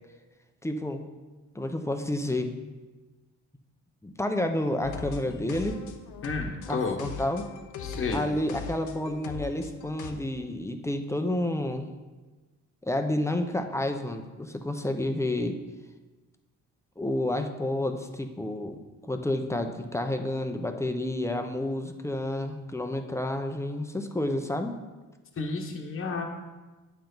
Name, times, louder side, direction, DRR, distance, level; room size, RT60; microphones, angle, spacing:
voice 1, 0.6-1.1 1.5-2.5 4.0-5.8 6.7-7.4 8.1-11.9 12.8-15.6 17.0-18.8 19.1-24.8, left 1 dB, 10° left, 5 dB, 0.8 m, -30 dB
sound 1, 4.8-10.1, left 5 dB, 90° left, 0.9 m, -40 dB
voice 2, 6.2-7.0 7.8-8.3 25.4-26.2, left 4 dB, 45° left, 1 dB, 1.2 m, -31 dB
9.1 x 6.9 x 3.9 m, 1.2 s
cardioid pair, 90°, 30 cm